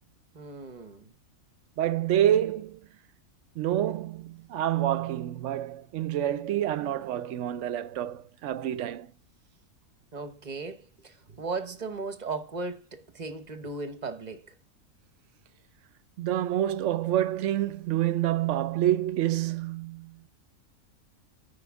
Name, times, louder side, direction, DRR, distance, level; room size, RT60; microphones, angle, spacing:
voice 1, 0.3-1.1 10.1-14.5, right 3 dB, 35° right, 0.8 m, -37 dB
voice 2, 1.8-2.8 3.6-9.1 16.2-20.2, right 12 dB, 70° right, 0.8 m, -27 dB
9.3 x 4.9 x 3.5 m
omnidirectional pair, 1.5 m